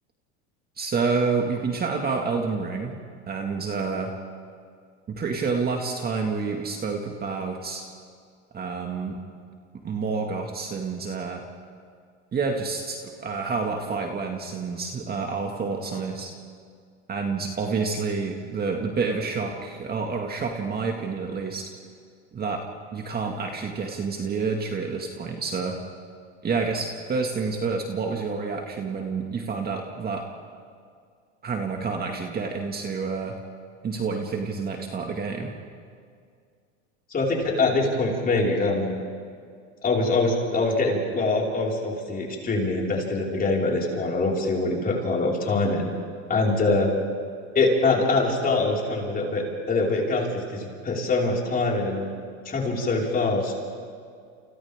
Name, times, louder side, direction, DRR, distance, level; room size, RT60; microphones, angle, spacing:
voice 1, 0.8-3.0 3.3-4.1 5.1-7.9 8.5-9.2 9.8-11.4 12.3-16.3 17.1-21.7 22.3-22.6 22.9-25.8 26.4-30.2 31.4-33.4 33.8-35.5, right 4 dB, 25° right, 2 dB, 2.1 m, -28 dB
voice 2, 37.1-38.9 39.8-45.9 46.3-46.9 47.6-52.1 52.5-53.5, left 3 dB, 25° left, -2 dB, 5.2 m, -24 dB
30.0 x 29.5 x 3.7 m, 2.2 s
supercardioid pair, 115°, 36 cm